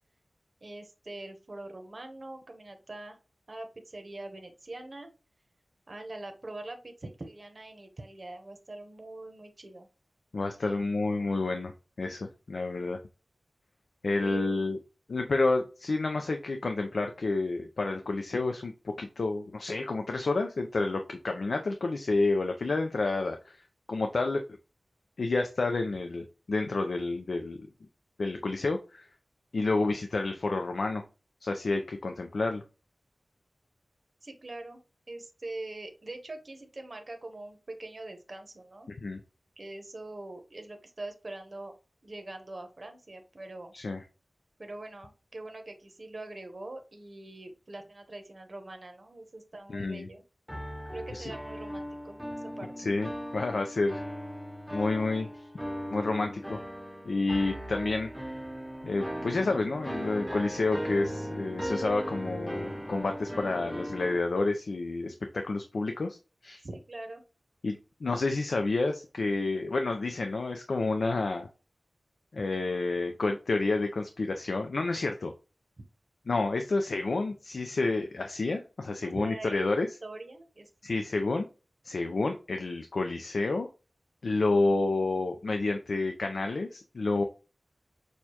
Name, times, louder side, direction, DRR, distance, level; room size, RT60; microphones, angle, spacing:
voice 1, 0.6-3.2 3.5-5.1 5.9-9.9 10.6-10.9 14.2-14.7 34.2-34.8 35.1-38.9 39.6-41.7 42.0-43.7 44.6-50.2 50.9-52.9 66.6-67.2 79.0-79.7 80.0-80.7, right 2 dB, 50° right, 5 dB, 0.8 m, -43 dB
voice 2, 10.3-11.7 12.0-13.0 14.0-14.8 15.1-23.6 23.9-24.4 25.2-27.7 28.2-29.1 29.5-31.0 31.4-32.6 39.0-39.2 43.7-44.0 49.7-50.1 51.1-51.3 52.8-54.0 54.7-55.4 55.9-56.6 57.1-58.1 58.8-66.2 66.4-66.6 67.6-71.5 72.3-75.3 76.3-79.9 80.8-81.5 81.8-83.7 84.2-87.2, left 3 dB, 85° left, 5 dB, 0.4 m, -29 dB
sound 1, 50.5-64.2, equal, 5° right, 0.6 m, -38 dB
6.3 x 2.3 x 2.8 m, 0.32 s
wide cardioid pair, 65°, 0 cm